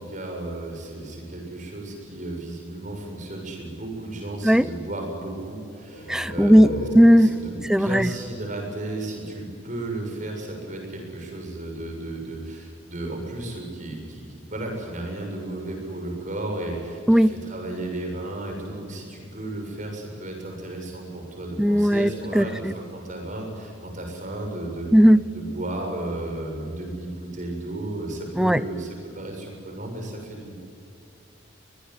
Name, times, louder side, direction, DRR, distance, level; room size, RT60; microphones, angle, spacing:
voice 1, 0.0-24.9 25.3-30.5, right 2 dB, 40° right, 2 dB, 7.1 m, -34 dB
sound 1, 5.9-9.4, left 1 dB, 70° left, 3.6 m, -36 dB
voice 2, 6.1-7.3 7.7-8.1 17.1-17.3 21.6-22.1 22.3-22.5 24.9-25.2 28.4-28.6, equal, 5° right, 16 dB, 0.5 m, -16 dB
24.0 x 20.0 x 9.6 m, 2.6 s
head